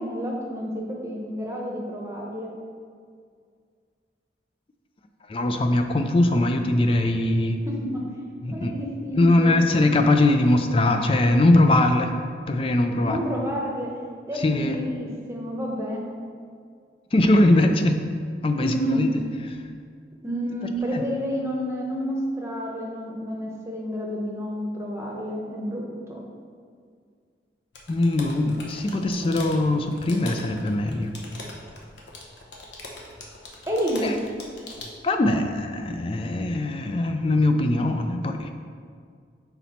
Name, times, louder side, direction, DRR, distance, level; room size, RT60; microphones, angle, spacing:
voice 1, 0.0-2.5 7.7-8.0 8.5-9.6 13.0-13.9 14.3-16.1 18.6-19.1 20.2-26.2 33.7-34.1, equal, 15° right, -2 dB, 0.8 m, -29 dB
voice 2, 5.3-7.6 8.4-8.7 9.2-12.2 12.5-13.2 14.3-14.8 17.1-18.0 18.4-19.1 20.9-21.0 27.9-31.1 34.0-34.2 35.0-38.5, left 2 dB, 30° left, 6 dB, 0.3 m, -21 dB
sound 1, 27.7-34.9, left 2 dB, 80° left, 0.9 m, -41 dB
5.9 x 4.1 x 4.2 m, 2.1 s
head